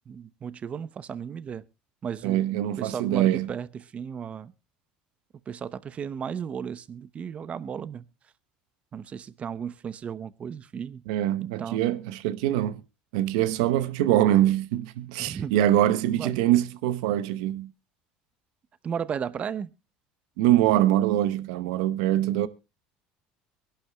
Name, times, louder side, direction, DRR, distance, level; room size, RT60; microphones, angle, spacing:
voice 1, 0.1-1.6 2.0-2.5 2.8-4.5 5.5-8.0 8.9-11.0 11.4-11.8 15.2-15.6 16.1-16.4 18.8-19.7, right 7 dB, 35° right, 0.8 m, -34 dB
voice 2, 2.2-3.5 11.1-12.8 13.1-17.7 20.4-22.5, right 13 dB, 85° right, 0.9 m, -23 dB
23.5 x 11.5 x 2.3 m
supercardioid pair, 100°, 4 cm